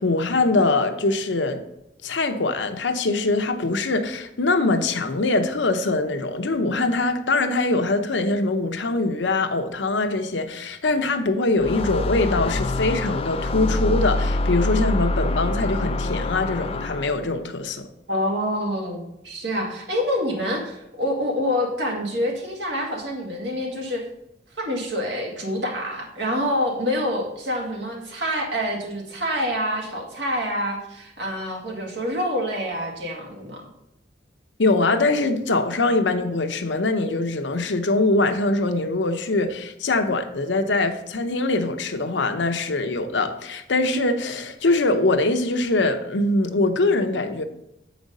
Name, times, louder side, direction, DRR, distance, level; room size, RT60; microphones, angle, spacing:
voice 1, 0.0-1.6 2.0-17.9 34.6-47.4, left 2 dB, 85° left, 0.8 m, -23 dB
sound 1, 11.6-17.3, left 2 dB, 30° left, 0.4 m, -25 dB
voice 2, 18.1-24.0 24.6-33.7, equal, 85° right, 2.0 m, -27 dB
8.1 x 5.1 x 5.3 m
head